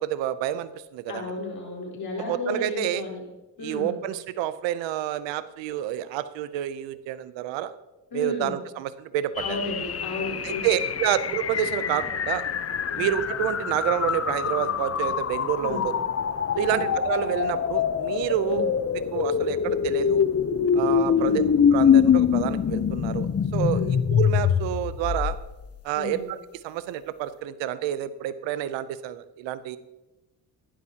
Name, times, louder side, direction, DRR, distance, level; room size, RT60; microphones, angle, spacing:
voice 1, 0.0-1.4 2.2-3.0 3.6-7.7 8.1-9.6 10.4-12.4 13.0-15.9 16.6-18.7 19.1-20.2 20.7-21.5 21.7-23.8 24.1-25.4 25.8-26.4 26.6-29.8, right 11 dB, 85° right, 15 dB, 0.7 m, -28 dB
voice 2, 1.1-3.2 3.6-4.0 8.1-8.6 9.4-10.6 11.8-11.9 12.9-13.1 15.6-15.9 16.5-16.9 18.4-18.7 21.2-21.4 23.7-24.0 26.0-26.3, left 3 dB, 55° left, -2 dB, 4.0 m, -33 dB
sound 1, 9.4-25.7, left 7 dB, 35° left, 0.7 m, -24 dB
15.0 x 11.0 x 2.9 m, 1.0 s
supercardioid pair, 60°, 43 cm